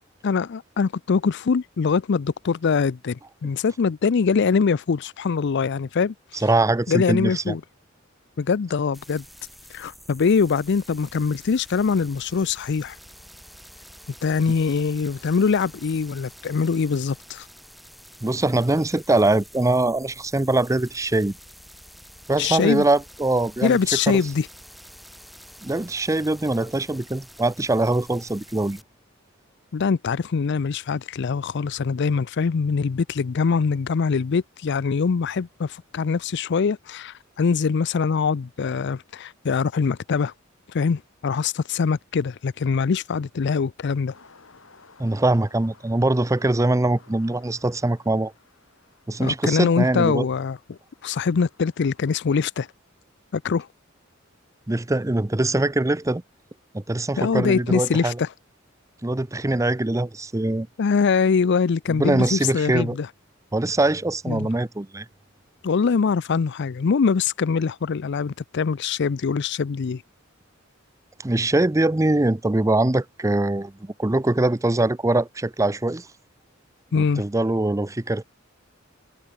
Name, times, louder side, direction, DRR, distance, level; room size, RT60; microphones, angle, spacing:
voice 1, 0.2-6.4 6.9-7.6 8.4-9.2 9.7-13.0 14.2-17.5 22.4-22.8 23.6-24.5 29.7-40.3 40.7-44.1 49.2-52.7 53.3-53.7 57.2-58.3 60.8-63.1 64.3-64.5 65.6-70.0 76.9-77.2, left 5 dB, 60° left, 0.5 m, -23 dB
voice 2, 6.3-7.5 18.2-21.3 22.3-23.8 24.1-24.2 25.6-28.8 45.0-48.3 49.1-50.2 54.7-56.2 56.7-58.2 59.0-60.7 61.9-63.0 63.5-65.1 71.2-76.1 77.0-78.2, right 2 dB, 15° right, 0.6 m, -22 dB
sound 1, 8.9-28.8, equal, ahead, 1.4 m, -48 dB
sound 2, 44.1-52.4, left 4 dB, 75° left, 4.0 m, -56 dB
head